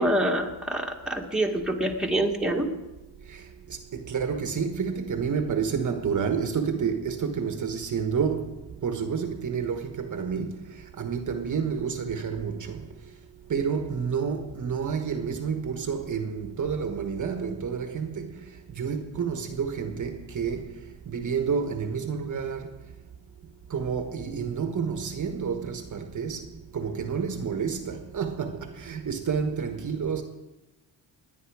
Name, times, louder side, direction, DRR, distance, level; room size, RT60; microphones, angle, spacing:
voice 1, 0.0-2.7, right 1 dB, ahead, 1.7 m, -26 dB
voice 2, 3.9-8.5 8.8-10.6 11.0-12.8 13.5-18.3 18.8-20.7 21.1-22.7 23.7-26.4 26.7-30.2, right 6 dB, 45° right, 1.3 m, -29 dB
20.5 x 9.6 x 4.8 m
cardioid pair, 115°, 44 cm